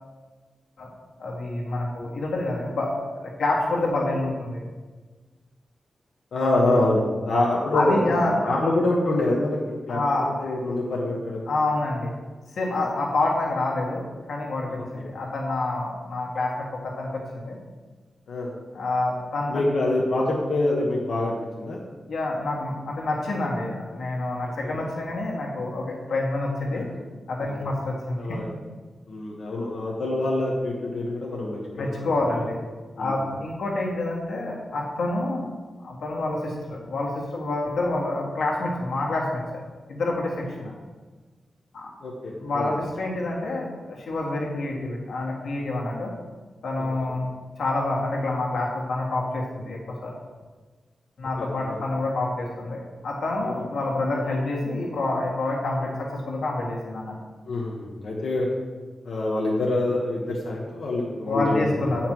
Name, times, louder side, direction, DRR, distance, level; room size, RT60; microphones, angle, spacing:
voice 1, 1.2-4.7 7.7-8.4 9.9-10.3 11.5-12.1 12.6-17.6 18.7-19.6 22.1-26.9 27.3-28.2 31.7-32.6 33.0-35.5 35.8-39.6 39.9-40.7 41.7-41.9 42.4-46.1 46.6-47.3 47.6-50.1 51.2-57.1 61.3-62.1, left 2 dB, 90° left, -2 dB, 1.8 m, -27 dB
voice 2, 6.3-10.0 10.4-11.5 18.3-18.5 19.5-21.8 24.6-24.7 26.7-26.8 27.5-27.7 28.2-28.5 29.1-32.1 33.0-33.2 42.0-42.7 46.8-46.9 51.4-51.8 53.4-53.6 57.5-58.5 59.0-61.8, left 2 dB, 60° left, -3 dB, 1.2 m, -26 dB
8.9 x 5.8 x 4.6 m, 1.4 s
wide cardioid pair, 175°, 0 cm